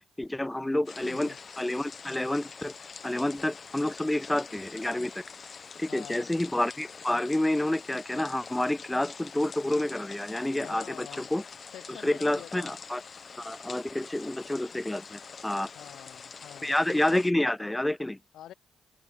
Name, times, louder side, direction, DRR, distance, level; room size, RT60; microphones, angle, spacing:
voice 1, 0.2-2.7 3.0-5.2 5.8-11.4 11.9-13.0 13.4-15.7 16.6-18.2, left 1 dB, 10° left, 0.4 m, -29 dB
sound 1, 0.9-17.3, left 5 dB, 45° left, 1.0 m, -45 dB
voice 2, 1.0-1.4 5.9-6.3 10.6-11.3 11.7-12.7 15.7-16.8 18.3-18.5, left 12 dB, 75° left, 0.5 m, -46 dB
open air
supercardioid pair, 55°, 0 cm